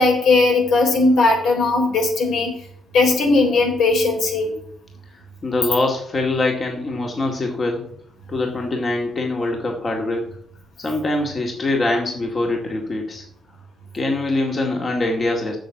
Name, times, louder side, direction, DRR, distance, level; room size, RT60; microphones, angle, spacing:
voice 1, 0.0-2.6 2.9-4.5, left 3 dB, 75° left, 2 dB, 3.8 m, -18 dB
voice 2, 5.4-7.8 8.3-10.2 10.8-13.2 13.9-15.6, left 2 dB, 35° left, 1 dB, 2.0 m, -23 dB
7.6 x 7.1 x 7.7 m, 0.66 s
cardioid pair, 90°, 0 cm